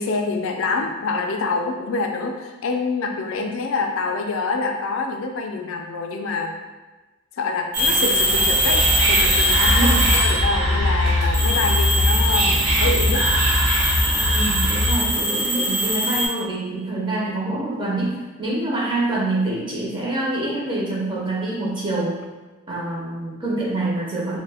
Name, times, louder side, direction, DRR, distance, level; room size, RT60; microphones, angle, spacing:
voice 1, 0.0-6.5 7.4-13.3, left 3 dB, 75° left, 4 dB, 0.4 m, -26 dB
sound 1, 7.7-10.6 11.1-16.3, equal, 50° right, 0.8 m, -22 dB
Whispering, 8.3-15.2, equal, 85° right, 0.5 m, -21 dB
voice 2, 9.7-10.1 14.3-22.2 22.7-24.4, right 2 dB, 20° right, -6 dB, 0.5 m, -26 dB
2.6 x 2.1 x 3.3 m, 1.2 s
head